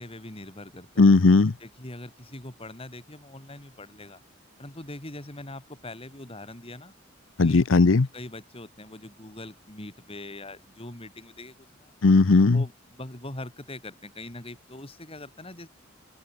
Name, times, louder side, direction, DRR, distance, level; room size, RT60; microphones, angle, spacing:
voice 1, 0.0-1.1 1.6-4.2 4.6-6.9 7.4-7.6 8.1-11.9 12.5-15.7, left 1 dB, 30° left, 3.4 m, -42 dB
voice 2, 1.0-1.5 7.4-8.1 12.0-12.6, left 3 dB, 80° left, 0.7 m, -17 dB
head